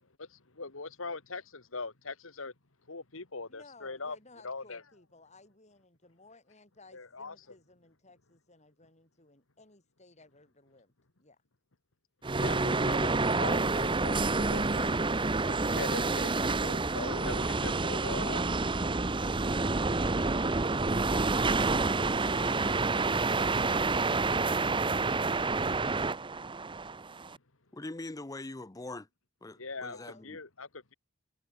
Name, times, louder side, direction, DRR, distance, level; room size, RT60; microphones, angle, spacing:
voice 1, 0.2-2.5 2.9-4.2 4.4-4.8 6.9-7.4 12.3-13.1 13.4-18.4 29.6-30.0 30.2-30.9, left 3 dB, 70° left, 2.0 m, -41 dB
voice 2, 3.4-10.9 11.2-11.3 29.8-30.4, left 2 dB, 35° left, 6.5 m, -57 dB
sound 1, 12.2-27.4, right 3 dB, 25° right, 0.8 m, -28 dB
voice 3, 27.7-29.1 29.4-30.4, left 2 dB, 15° left, 0.6 m, -42 dB
head